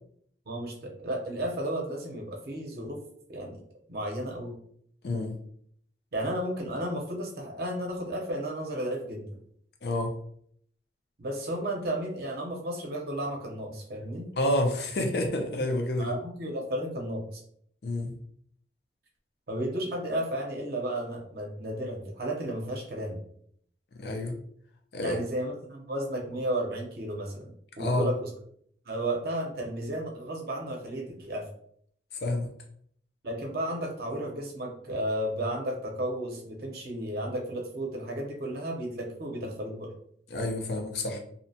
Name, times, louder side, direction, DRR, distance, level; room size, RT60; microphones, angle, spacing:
voice 1, 0.5-3.0 3.3-3.6 3.9-4.6 6.1-9.2 11.2-14.2 16.0-17.4 19.5-23.2 25.0-27.5 27.8-28.3 28.9-31.4 33.2-39.9, right 1 dB, 55° right, 0 dB, 0.6 m, -33 dB
voice 2, 9.8-10.1 14.4-16.2 17.8-18.1 24.0-24.3 24.9-25.2 27.8-28.1 32.1-32.5 40.3-41.2, left 1 dB, 60° left, 3 dB, 0.5 m, -28 dB
2.7 x 2.1 x 2.7 m, 0.65 s
head